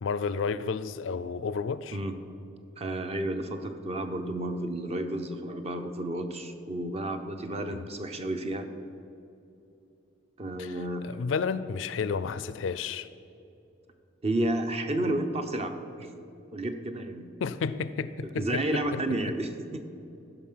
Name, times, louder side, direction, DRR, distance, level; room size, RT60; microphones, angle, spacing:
voice 1, 0.0-2.0 7.7-7.8 10.6-10.8 11.0-13.1 17.4-19.0, left 5 dB, 70° left, 0.4 m, -31 dB
voice 2, 2.8-8.7 10.4-11.1 14.2-16.1 16.5-17.2 18.4-19.9, right 1 dB, 30° right, 0.8 m, -31 dB
15.0 x 5.8 x 5.7 m
head